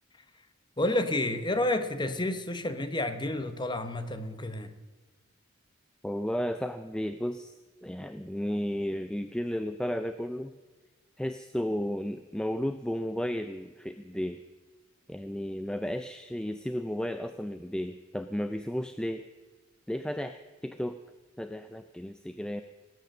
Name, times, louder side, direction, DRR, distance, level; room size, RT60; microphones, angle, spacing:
voice 1, 0.8-4.7, left 1 dB, 20° left, 9 dB, 1.0 m, -30 dB
voice 2, 6.0-7.5 7.8-10.5 11.2-14.4 15.1-19.2 19.9-21.0 21.4-22.6, equal, 5° left, 9 dB, 0.4 m, -33 dB
18.5 x 9.2 x 6.6 m, 1.3 s
head